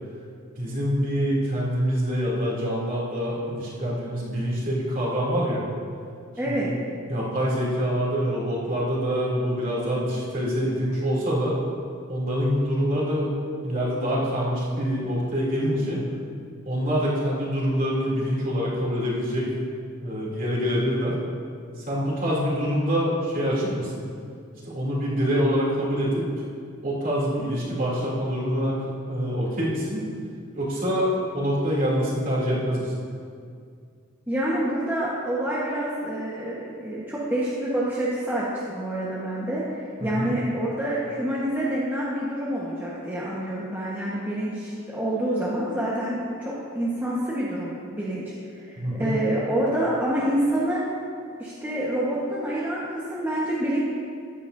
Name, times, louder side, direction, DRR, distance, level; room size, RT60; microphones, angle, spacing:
voice 1, 0.6-5.6 6.4-6.8 7.1-11.6 12.1-13.3 13.6-16.0 16.7-19.5 20.0-21.2 21.8-24.0 24.7-26.3 26.8-28.8 29.1-30.0 30.5-32.9 40.0-40.3 48.8-49.1, equal, 40° right, -6 dB, 3.0 m, -25 dB
voice 2, 6.4-6.7 34.3-50.8 51.4-53.8, right 1 dB, 10° right, -8 dB, 1.3 m, -27 dB
15.0 x 11.0 x 2.7 m, 2.3 s
head